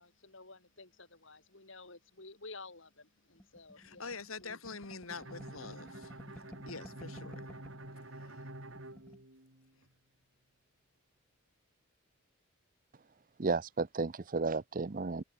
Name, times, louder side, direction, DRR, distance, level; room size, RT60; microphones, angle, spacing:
voice 1, 0.0-4.1 4.4-4.5 6.3-6.5, left 3 dB, 65° left, 4.1 m, -52 dB
sound 1, 3.4-7.9 8.3-8.4 8.6-9.2, equal, 5° left, 2.2 m, -54 dB
voice 2, 3.8-7.6 7.9-8.5, left 4 dB, 85° left, 3.3 m, -46 dB
Bowed string instrument, 5.1-9.9, right 1 dB, 70° right, 5.8 m, -48 dB
voice 3, 13.4-15.2, right 3 dB, 40° right, 0.6 m, -33 dB
head